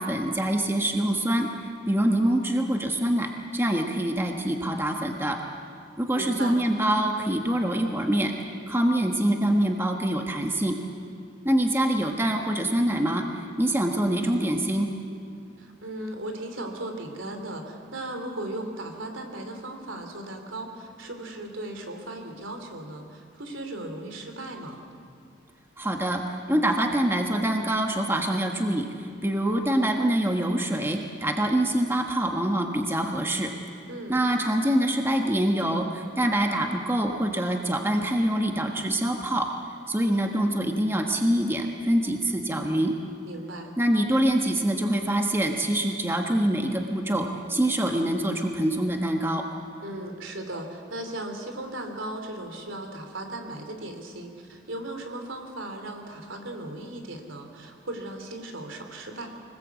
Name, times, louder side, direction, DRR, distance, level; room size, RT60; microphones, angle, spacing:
voice 1, 0.0-1.5 1.9-5.4 6.0-8.3 8.7-10.8 11.4-14.9 25.8-26.2 26.5-33.5 34.1-39.5 39.9-42.9 43.8-49.4, right 1 dB, 10° right, 3 dB, 1.4 m, -25 dB
voice 2, 6.1-6.6 15.6-24.8 33.9-34.2 43.2-43.7 49.8-59.3, right 1 dB, 80° right, 4 dB, 3.3 m, -37 dB
24.5 x 20.0 x 8.3 m, 2.4 s
head